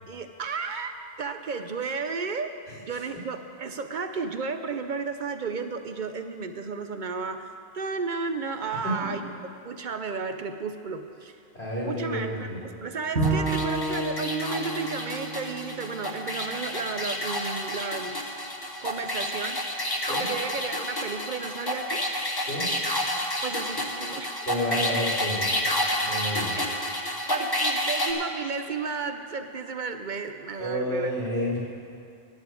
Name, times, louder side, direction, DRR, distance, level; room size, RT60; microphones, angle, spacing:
voice 1, 0.1-2.5 2.8-7.5 7.7-9.2 9.6-11.4 11.8-12.5 12.8-18.2 18.8-22.1 23.4-24.4 26.4-31.1, right 4 dB, 55° right, 7 dB, 0.7 m, -33 dB
voice 2, 2.7-3.0 8.7-9.1 11.5-12.6 20.0-20.3 22.4-22.7 24.5-25.8 26.0-26.6 27.1-27.3 30.6-31.6, equal, 90° left, -6 dB, 3.5 m, -30 dB
sound 1, 13.2-28.1, left 1 dB, 25° left, 1.0 m, -30 dB
Bowed string instrument, 13.2-16.4, right 2 dB, 80° right, 2.0 m, -30 dB
10.5 x 7.1 x 9.0 m, 2.5 s
omnidirectional pair, 1.1 m